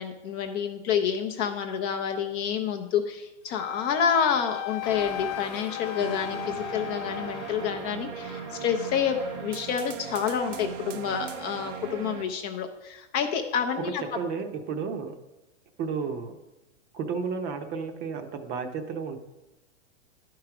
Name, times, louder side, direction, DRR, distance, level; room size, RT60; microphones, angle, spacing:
voice 1, 0.0-14.0, left 7 dB, 30° left, 4 dB, 0.5 m, -28 dB
Wind instrument woodwind instrument, 3.5-7.8, left 13 dB, 85° left, 0.6 m, -37 dB
sound 1, 4.8-9.6, left 3 dB, 15° left, 1.0 m, -43 dB
sound 2, 6.0-12.2, right 7 dB, 75° right, 0.9 m, -38 dB
voice 2, 13.8-15.1 15.8-16.4 16.9-19.2, right 5 dB, 30° right, 7 dB, 0.7 m, -32 dB
11.0 x 4.7 x 4.9 m, 1.1 s
hypercardioid pair, 140°, 36 cm